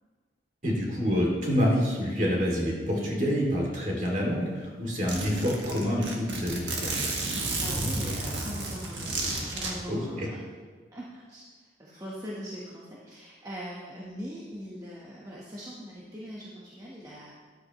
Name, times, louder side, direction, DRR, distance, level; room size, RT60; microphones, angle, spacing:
voice 1, 0.6-7.0 9.9-10.3, equal, 40° right, -2 dB, 2.6 m, -27 dB
Zipper (clothing), 4.3-4.4 4.6-4.7 5.1-9.7, right 2 dB, 90° right, 1.8 m, -32 dB
voice 2, 7.6-9.1 9.5-10.4 10.9-11.5 11.8-17.3, equal, 20° right, -6 dB, 1.2 m, -41 dB
13.0 x 10.5 x 3.1 m, 1.5 s
head